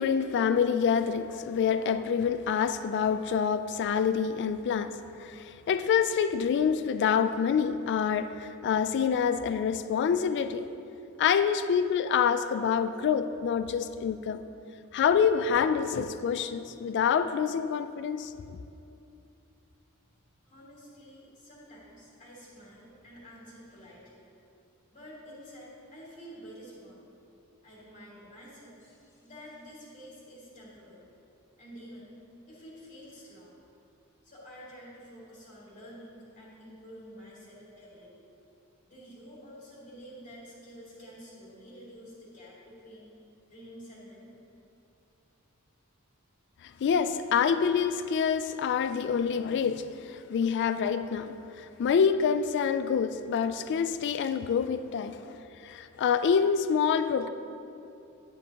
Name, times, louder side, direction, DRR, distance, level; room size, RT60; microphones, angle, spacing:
voice 1, 0.0-10.7 11.2-14.4 14.9-18.6 46.6-55.4 55.6-57.3, left 7 dB, 55° left, 11 dB, 0.3 m, -27 dB
voice 2, 20.4-24.2 24.9-27.0 27.6-31.1 31.6-32.2 32.5-33.6 34.2-38.2 38.9-43.1 43.5-44.3, equal, 35° left, -7 dB, 2.2 m, -49 dB
10.5 x 9.6 x 2.9 m, 2.8 s
head